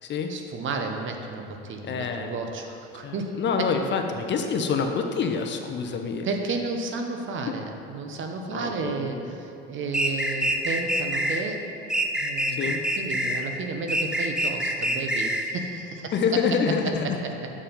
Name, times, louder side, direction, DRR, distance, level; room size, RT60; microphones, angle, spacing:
voice 1, 0.3-3.3 3.6-3.7 6.2-11.6 12.2-17.5, right 3 dB, 40° right, 4 dB, 0.9 m, -32 dB
voice 2, 1.8-2.3 3.0-6.2 8.5-9.1 12.6-12.8 16.1-16.8, left 5 dB, 40° left, 5 dB, 0.7 m, -26 dB
sound 1, 9.9-11.4 11.9-13.4 13.9-15.5, right 1 dB, 5° right, 0.5 m, -26 dB
7.3 x 4.4 x 5.2 m, 2.6 s
hypercardioid pair, 80°, 30 cm